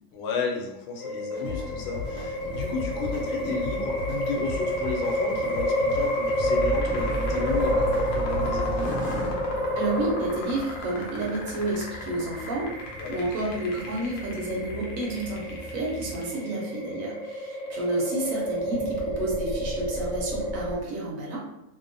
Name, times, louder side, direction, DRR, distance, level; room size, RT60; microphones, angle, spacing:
voice 1, 0.1-9.0 13.0-13.2, left 4 dB, 80° left, 0 dB, 1.1 m, -33 dB
sound 1, 1.0-20.8, equal, 65° left, 0.6 m, -30 dB
sound 2, 1.3-9.3, left 4 dB, 85° right, 1.2 m, -37 dB
sound 3, 2.0-16.1, right 2 dB, 40° left, 1.1 m, -38 dB
voice 2, 9.8-12.7 13.1-21.4, right 2 dB, 65° right, -3 dB, 1.0 m, -30 dB
2.8 x 2.0 x 2.6 m, 0.90 s
omnidirectional pair, 1.6 m